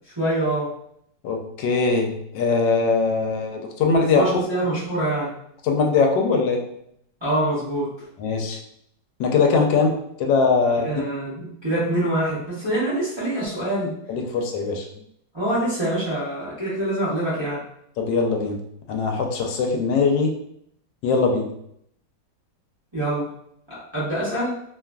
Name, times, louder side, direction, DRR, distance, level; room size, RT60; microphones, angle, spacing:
voice 1, 0.2-0.7 3.9-5.3 7.2-7.9 10.8-13.9 15.3-17.6 22.9-23.3 23.7-24.6, right 1 dB, 25° right, -10 dB, 0.6 m, -25 dB
voice 2, 1.2-4.4 5.6-6.6 8.2-8.6 9.2-9.9 10.2-10.9 14.1-14.9 18.0-18.6 18.9-20.3 21.0-21.5, left 4 dB, 80° left, 2 dB, 1.2 m, -21 dB
3.1 x 2.4 x 2.2 m, 0.71 s
omnidirectional pair, 2.0 m